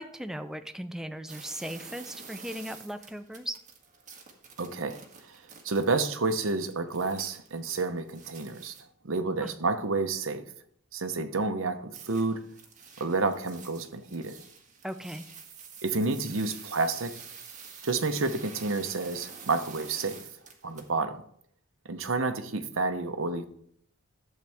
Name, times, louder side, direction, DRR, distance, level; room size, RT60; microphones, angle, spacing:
voice 1, 0.0-3.6 9.4-9.6 14.8-15.2, equal, ahead, 8 dB, 0.5 m, -38 dB
sound 1, 1.3-8.8 11.9-20.9, right 6 dB, 35° right, 1.7 m, -48 dB
voice 2, 4.6-5.0 5.6-8.7 9.0-10.4 10.9-12.4 13.0-14.3 15.8-17.1 17.8-20.2 20.6-21.2 21.9-23.4, right 3 dB, 70° right, 9 dB, 0.9 m, -29 dB
12.0 x 7.6 x 3.5 m, 0.65 s
head